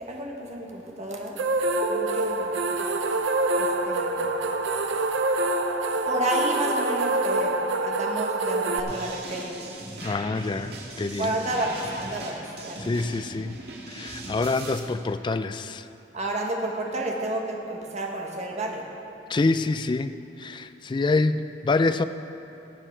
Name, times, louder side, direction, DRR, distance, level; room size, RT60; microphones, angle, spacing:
voice 1, 0.0-1.4 1.8-2.9 3.6-4.3 6.1-9.6 11.2-12.9 16.1-18.9, right 1 dB, 40° right, 0 dB, 1.4 m, -30 dB
sound 1, 1.4-8.8, right 2 dB, 85° right, 0.7 m, -26 dB
sound 2, 8.9-14.8, right 2 dB, 60° right, 2.2 m, -39 dB
voice 2, 10.0-11.3 12.8-13.6 13.9-15.9 19.3-22.0, left 3 dB, 25° left, 11 dB, 0.3 m, -26 dB
17.5 x 8.0 x 4.5 m, 2.8 s
head